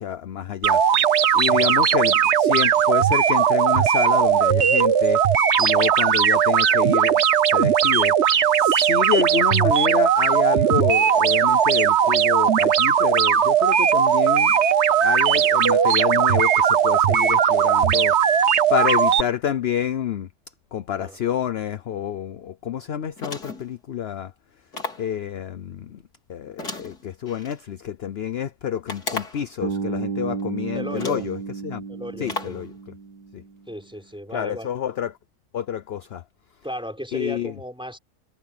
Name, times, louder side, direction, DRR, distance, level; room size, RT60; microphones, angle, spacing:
voice 1, 0.0-7.2 7.5-14.6 15.0-20.3 20.7-24.3 25.0-26.0 26.3-31.8 32.2-32.7 33.3-33.4 34.3-35.2 35.5-36.2 37.1-37.5, left 9 dB, 55° left, 0.7 m, -28 dB
sound 1, 0.6-19.2, right 8 dB, 50° right, 1.1 m, -18 dB
voice 2, 1.4-1.7 21.0-21.2 30.7-31.3 31.9-32.6 33.7-34.7 36.6-38.0, equal, 5° right, 5.5 m, -35 dB
sound 2, 23.2-23.7 24.7-25.1 26.6-27.6 28.9-29.5 30.4-30.5 31.0-31.3 32.3-32.6, left 3 dB, 75° left, 4.8 m, -34 dB
Bass guitar, 29.6-33.6, right 5 dB, 85° right, 2.4 m, -32 dB
omnidirectional pair, 1.7 m